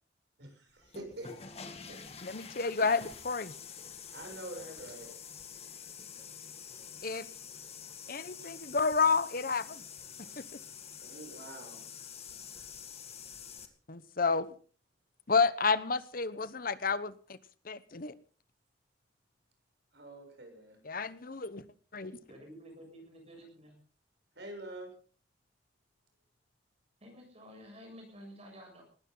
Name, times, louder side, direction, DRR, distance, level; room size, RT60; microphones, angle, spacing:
voice 1, 0.4-1.6 1.9-2.0 4.1-5.1 11.0-11.8 19.9-20.8 24.4-24.9, right 1 dB, 70° right, 7.4 m, -46 dB
sound 1, 0.8-13.7, left 7 dB, 35° left, 2.0 m, -47 dB
voice 2, 2.2-3.5 7.0-7.3 8.1-9.8 13.9-14.5 15.3-17.4 17.6-18.1 20.8-21.6 21.9-22.2, left 4 dB, 50° left, 1.1 m, -30 dB
voice 3, 22.3-23.8 27.0-28.8, equal, 35° right, 7.4 m, -51 dB
20.0 x 15.5 x 4.0 m
head